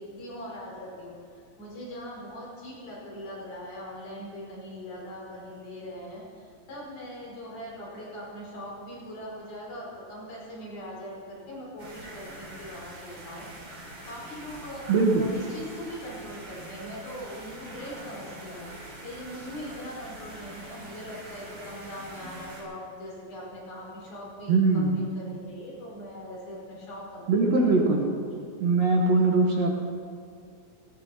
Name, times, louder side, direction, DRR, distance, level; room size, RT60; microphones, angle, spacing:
voice 1, 0.0-14.9 15.2-28.4, equal, 75° left, -5 dB, 6.8 m, -41 dB
sound 1, 11.8-22.6, right 1 dB, 40° right, 4.7 m, -44 dB
voice 2, 14.9-15.3 24.5-25.0 27.3-28.1 28.6-29.7, right 3 dB, 60° right, 0 dB, 2.0 m, -21 dB
18.0 x 17.0 x 4.3 m, 2.3 s
omnidirectional pair, 4.2 m